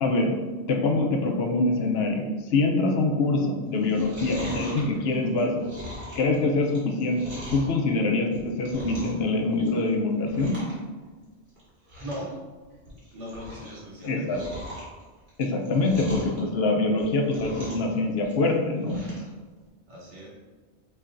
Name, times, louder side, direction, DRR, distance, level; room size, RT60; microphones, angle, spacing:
voice 1, 0.0-0.3 0.7-5.6 6.2-7.2 7.5-10.5 14.0-14.4 15.4-19.0, left 2 dB, 65° left, 2 dB, 0.8 m, -24 dB
Chewing mastication, 3.7-7.7 8.2-9.3 9.5-9.9 10.2-10.7 11.0-11.1 11.6-11.7 11.9-12.3 12.7-13.7 14.0-16.4 16.9-17.9 18.2-19.3 19.7-19.8, equal, 65° right, 2.0 m, -40 dB
voice 2, 12.0-12.4 13.1-14.2 19.9-20.3, equal, 90° right, -4 dB, 1.5 m, -38 dB
6.5 x 3.0 x 2.5 m, 1.3 s
omnidirectional pair, 1.2 m